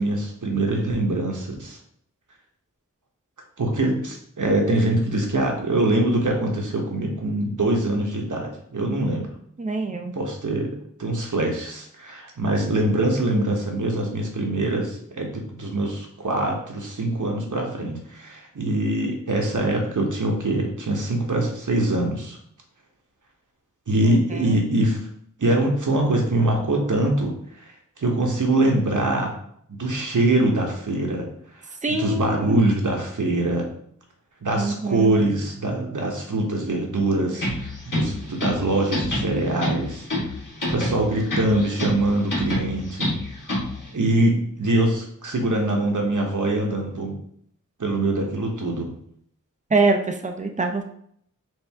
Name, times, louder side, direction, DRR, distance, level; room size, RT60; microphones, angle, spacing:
voice 1, 0.0-1.8 3.6-9.3 10.1-10.7 11.0-22.4 23.9-25.0 25.4-29.3 29.7-31.3 31.5-33.7 34.4-40.3 40.7-43.2 43.9-47.2 47.8-49.0, right 1 dB, 70° right, 1 dB, 1.0 m, -23 dB
voice 2, 9.6-10.1 24.1-24.6 31.8-32.7 34.6-35.1 49.7-50.8, right 3 dB, 25° right, 5 dB, 0.5 m, -24 dB
sound 1, 37.3-43.9, left 1 dB, 75° left, 1.7 m, -28 dB
4.4 x 2.6 x 3.4 m, 0.66 s
wide cardioid pair, 55°, 32 cm